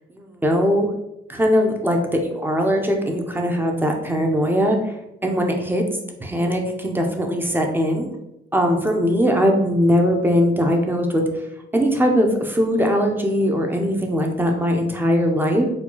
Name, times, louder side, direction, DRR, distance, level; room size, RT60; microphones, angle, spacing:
voice 1, 0.1-0.9 1.3-4.9 5.2-5.9 6.2-8.1 8.5-11.3 11.7-15.7, equal, 10° right, 3 dB, 0.6 m, -20 dB
4.3 x 2.2 x 2.9 m, 0.88 s
cardioid pair, 90°, 20 cm